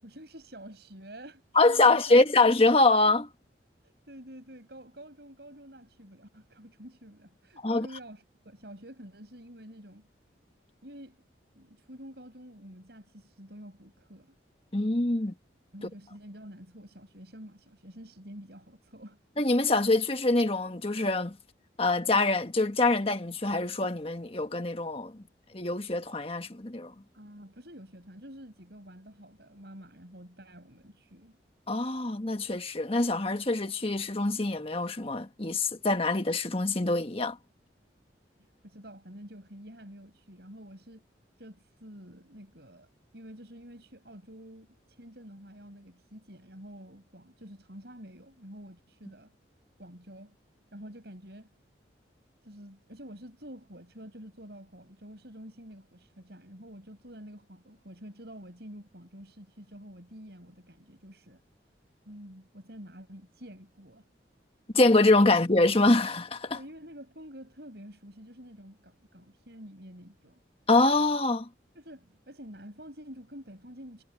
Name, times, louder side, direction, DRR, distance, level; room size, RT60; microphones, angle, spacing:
voice 1, 0.0-2.5 3.8-10.1 10.8-11.2 11.5-14.3 15.2-15.3 15.7-19.2 27.1-31.4 38.6-41.0 41.4-49.3 49.8-50.4 50.7-51.5 52.4-61.4 62.0-64.0 66.5-70.4 71.7-74.0, equal, 60° right, 6.8 m, -48 dB
voice 2, 1.5-3.3 7.6-7.9 14.7-15.3 19.4-21.4 21.8-25.1 25.5-26.9 31.7-37.4 64.7-66.6 70.7-71.5, left 2 dB, 30° left, 1.5 m, -24 dB
head